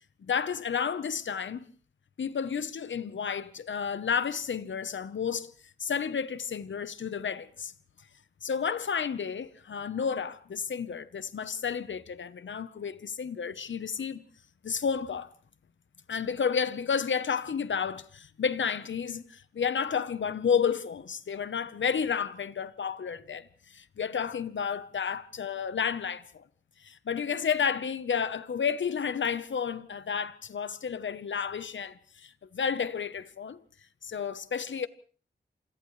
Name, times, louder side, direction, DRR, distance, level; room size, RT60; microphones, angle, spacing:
voice 1, 0.2-1.7 2.2-5.5 5.8-7.7 8.4-14.2 14.6-15.3 16.1-26.4 26.8-33.6 34.0-34.9, left 6 dB, 85° left, 1.0 m, -31 dB
30.0 x 27.0 x 3.2 m
wide cardioid pair, 100°, 19 cm